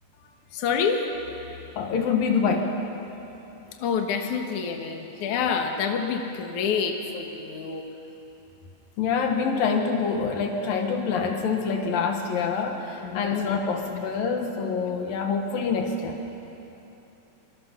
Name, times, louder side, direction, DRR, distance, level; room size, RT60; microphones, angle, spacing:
voice 1, 0.5-1.2 3.8-7.8 13.0-13.5, left 6 dB, 65° left, 3 dB, 2.8 m, -27 dB
voice 2, 1.8-2.7 9.0-16.2, left 5 dB, 80° left, 3 dB, 3.3 m, -26 dB
26.0 x 26.0 x 6.0 m, 3.0 s
omnidirectional pair, 4.0 m